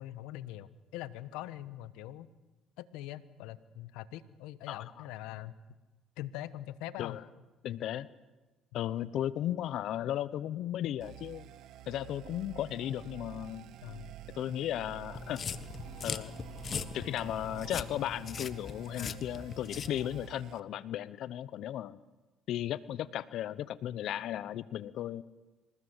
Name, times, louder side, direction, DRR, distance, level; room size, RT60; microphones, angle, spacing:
voice 1, 0.0-2.3 2.8-5.5 6.2-7.2 13.8-14.1 18.9-19.2, left 14 dB, 85° left, 14 dB, 1.2 m, -43 dB
voice 2, 7.6-8.1 8.7-11.5 11.9-13.7 14.3-15.5 16.0-16.3 16.9-22.0 22.5-25.2, left 12 dB, 70° left, 17 dB, 0.8 m, -35 dB
sound 1, 11.0-20.6, right 13 dB, 70° right, 1.0 m, -49 dB
sound 2, 15.1-20.3, left 6 dB, 45° left, 1.4 m, -41 dB
26.5 x 19.5 x 8.1 m, 1.2 s
supercardioid pair, 80°, 0 cm